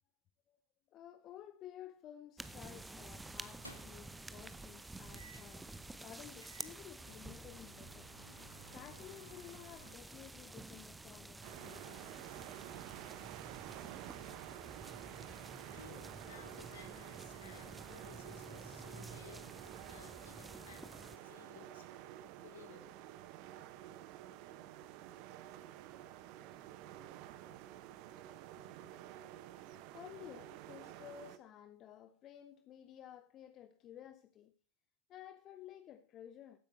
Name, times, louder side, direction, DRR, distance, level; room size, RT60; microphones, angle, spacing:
voice 1, 0.9-8.1 8.7-12.2 15.6-15.7 29.9-34.5 35.1-36.6, left 11 dB, 30° left, 0.7 m, -54 dB
sound 1, 2.4-21.2, right 2 dB, 10° right, 0.8 m, -51 dB
sound 2, 3.4-4.2 5.2-5.6 6.1-6.2 6.4-10.0, right 1 dB, 90° right, 1.8 m, -58 dB
sound 3, 11.4-31.4, right 12 dB, 45° right, 0.9 m, -51 dB
voice 2, 15.7-21.9 22.4-23.0, left 5 dB, 65° left, 2.7 m, -58 dB
15.0 x 8.5 x 4.3 m
figure-of-eight pair, 90°, 0 cm